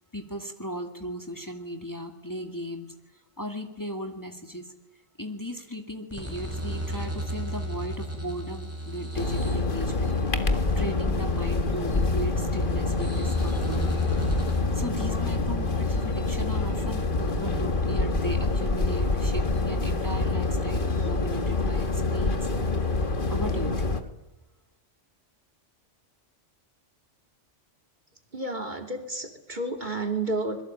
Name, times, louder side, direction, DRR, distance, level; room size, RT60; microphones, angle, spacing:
voice 1, 0.1-4.7 5.2-10.1 10.8-13.9 14.7-22.5 23.3-23.9, equal, 15° left, 5 dB, 2.4 m, -36 dB
sound 1, 6.1-14.6, right 1 dB, 10° right, 6.8 m, -35 dB
sound 2, 9.1-24.0, left 3 dB, 45° left, 1.9 m, -26 dB
voice 2, 28.3-30.6, right 2 dB, 40° right, 6 dB, 2.9 m, -31 dB
27.0 x 22.0 x 8.9 m, 1.1 s
omnidirectional pair, 1.3 m